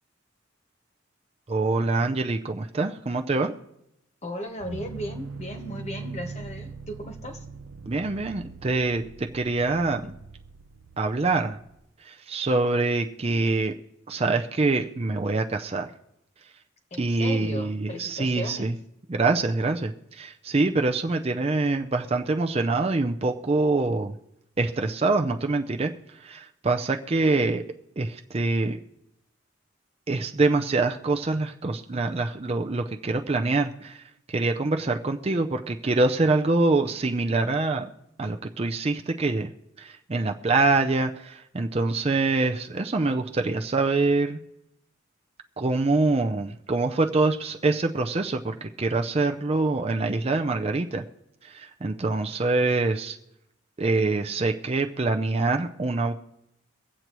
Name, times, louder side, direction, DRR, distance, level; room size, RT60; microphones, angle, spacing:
voice 1, 1.5-3.5 7.9-10.1 11.0-11.6 12.0-13.7 14.1-15.9 17.0-18.7 19.1-24.1 24.6-25.9 26.2-27.6 28.0-28.8 30.1-37.9 38.2-39.5 39.8-44.4 45.6-51.0 51.4-53.2 53.8-56.1, right 3 dB, 30° right, 4 dB, 0.5 m, -25 dB
voice 2, 4.2-7.4 16.9-18.7, equal, 35° left, 4 dB, 1.2 m, -36 dB
sound 1, 4.6-11.8, right 4 dB, 85° right, 0.6 m, -41 dB
24.0 x 8.0 x 3.0 m, 0.83 s
head